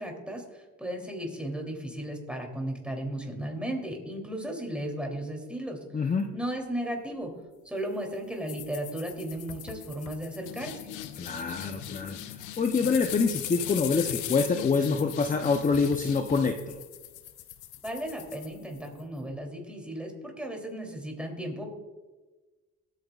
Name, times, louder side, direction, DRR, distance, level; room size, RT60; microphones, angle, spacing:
voice 1, 0.0-5.8 6.3-7.3 7.6-10.9 17.8-21.7, right 1 dB, 5° right, 1 dB, 3.1 m, -35 dB
voice 2, 5.9-6.3 11.2-16.8, left 4 dB, 25° left, 5 dB, 0.7 m, -26 dB
sound 1, 8.5-19.0, left 11 dB, 90° left, 0.8 m, -39 dB
22.5 x 9.1 x 2.4 m, 1.2 s
cardioid pair, 90°, 30 cm